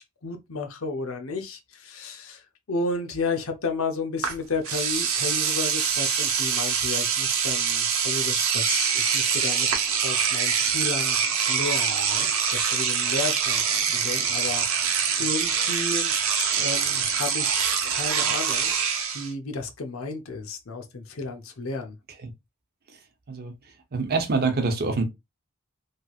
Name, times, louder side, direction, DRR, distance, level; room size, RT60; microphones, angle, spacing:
voice 1, 0.0-9.7 10.0-14.9 15.2-16.1 16.6-18.8 19.1-22.0, left 3 dB, 75° left, 0.7 m, -33 dB
Engine / Domestic sounds home sounds, 4.2-4.3 4.6-19.3, right 7 dB, 80° right, 0.8 m, -24 dB
voice 2, 23.9-25.1, right 3 dB, 45° right, 0.8 m, -25 dB
3.2 x 2.8 x 2.4 m
head